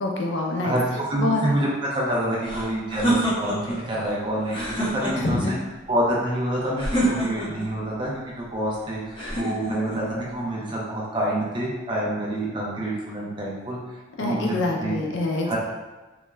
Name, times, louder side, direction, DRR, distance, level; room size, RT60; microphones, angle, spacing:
voice 1, 0.0-0.8 1.2-1.4 5.1-5.5 14.2-15.6, left 2 dB, 70° left, 0 dB, 0.4 m, -25 dB
voice 2, 0.6-1.7 1.9-5.5 5.9-8.1 8.4-13.8 14.2-14.5 14.8-14.9 15.5-15.6, right 1 dB, 25° right, -5 dB, 0.5 m, -27 dB
sound 1, 2.4-3.8 4.4-5.5 6.8-7.7 9.1-10.0, right 1 dB, 25° left, 0.6 m, -26 dB
2.3 x 2.2 x 3.0 m, 1.2 s
head